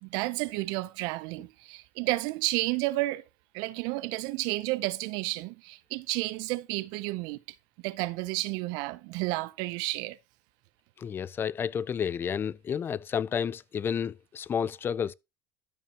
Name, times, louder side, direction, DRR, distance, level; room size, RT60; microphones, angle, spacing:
voice 1, 0.0-3.2 3.5-7.6 7.8-10.2, right 21 dB, 70° right, 0.5 m, -31 dB
voice 2, 11.0-15.1, left 7 dB, 30° left, 0.4 m, -31 dB
12.5 x 5.6 x 2.8 m
supercardioid pair, 110°, 7 cm